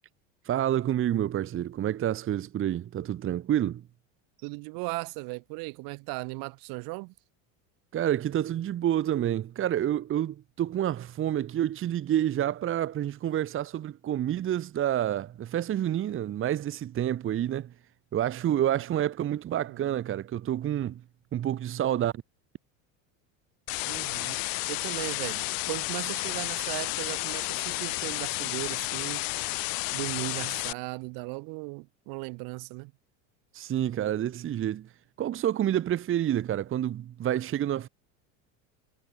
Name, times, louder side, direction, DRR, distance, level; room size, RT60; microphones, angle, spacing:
voice 1, 0.4-3.8 7.9-17.7 18.1-21.0 21.3-22.1 33.5-34.9 35.2-37.9, right 11 dB, 30° right, 1.3 m, -28 dB
voice 2, 4.4-7.1 19.5-19.9 23.9-24.4 24.7-29.3 29.9-32.9, right 29 dB, 65° right, 2.1 m, -37 dB
sound 1, 23.7-30.7, left 25 dB, 60° left, 2.3 m, -32 dB
supercardioid pair, 125°, 39 cm